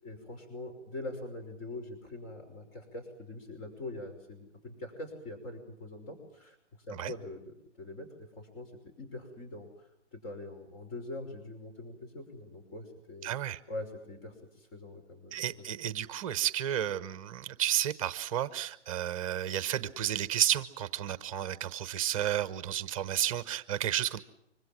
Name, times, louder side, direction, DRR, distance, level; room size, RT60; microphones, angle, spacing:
voice 1, 0.0-6.6 6.9-8.7 9.0-13.3 13.7-15.7, left 2 dB, 30° left, 3 dB, 5.6 m, -43 dB
voice 2, 13.2-13.6 15.3-24.2, right 11 dB, 30° right, 13 dB, 1.1 m, -32 dB
25.5 x 25.0 x 7.6 m, 0.79 s
hypercardioid pair, 155°, 36 cm